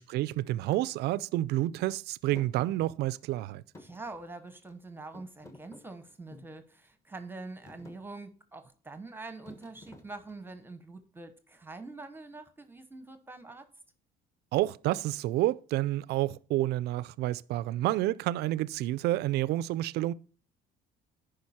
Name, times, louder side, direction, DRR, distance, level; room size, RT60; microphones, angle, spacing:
voice 1, 0.0-3.6 14.5-20.1, right 15 dB, 75° right, 0.4 m, -29 dB
Thump thud, 0.7-0.9 2.3-3.4 3.7-4.7 5.1-6.6 7.2-7.4 7.6-8.0 9.5-10.5, left 1 dB, 15° left, 1.3 m, -51 dB
voice 2, 3.8-13.6, right 3 dB, 10° right, 0.9 m, -45 dB
10.5 x 5.1 x 4.2 m
cardioid pair, 110°, 17 cm